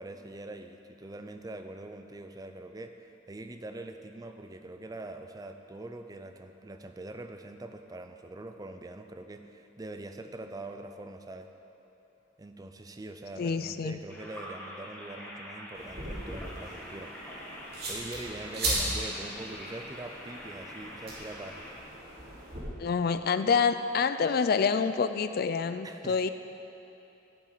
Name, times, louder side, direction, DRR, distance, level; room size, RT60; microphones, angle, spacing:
voice 1, 0.0-11.5 12.4-17.1 17.9-21.6 25.8-26.3, right 2 dB, 20° right, 7 dB, 0.4 m, -43 dB
voice 2, 13.4-14.0 22.8-26.3, left 5 dB, 50° left, 11 dB, 0.4 m, -27 dB
sound 1, 14.1-21.7, equal, 10° left, 1.6 m, -45 dB
sound 2, 15.8-22.6, right 1 dB, 55° right, 2.5 m, -37 dB
14.5 x 7.3 x 4.0 m, 3.0 s
head